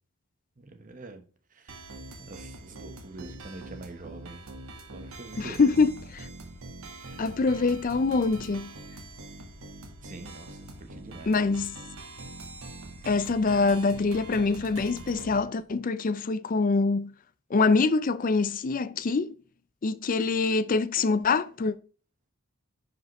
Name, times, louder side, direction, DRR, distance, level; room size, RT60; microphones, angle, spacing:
voice 1, 0.6-1.2 1.5-1.9 2.2-4.5 4.9-5.8 7.0-7.3 10.0-11.3, right 2 dB, 40° right, 1.0 m, -45 dB
sound 1, 1.7-15.4, right 2 dB, 80° right, 1.6 m, -43 dB
voice 2, 5.4-6.3 7.2-8.7 11.3-11.8 13.1-17.1 17.5-19.3 19.8-21.7, left 4 dB, 40° left, 0.4 m, -25 dB
10.5 x 5.1 x 3.1 m
head